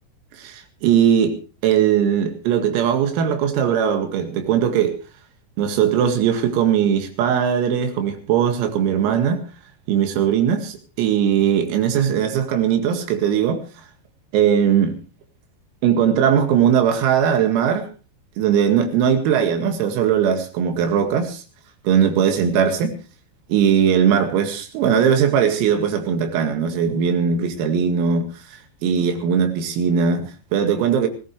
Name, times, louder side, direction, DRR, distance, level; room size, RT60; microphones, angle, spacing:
voice 1, 0.4-1.4 1.6-5.0 5.6-9.4 9.9-13.6 14.3-15.0 15.8-17.9 18.4-21.4 21.8-22.9 23.5-31.1, right 8 dB, 85° right, 4.8 m, -19 dB
21.0 x 17.0 x 3.3 m
omnidirectional pair, 6.0 m